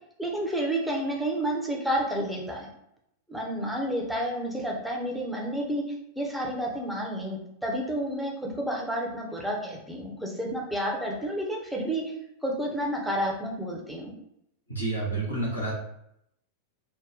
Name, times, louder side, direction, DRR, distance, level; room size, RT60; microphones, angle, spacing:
voice 1, 0.2-2.7 3.3-5.8 6.2-12.1 12.4-14.1, right 1 dB, 5° right, -1 dB, 0.8 m, -30 dB
voice 2, 14.7-15.7, right 2 dB, 85° left, -5 dB, 1.2 m, -29 dB
3.6 x 2.2 x 3.7 m, 0.76 s
figure-of-eight pair, 90°, 0 cm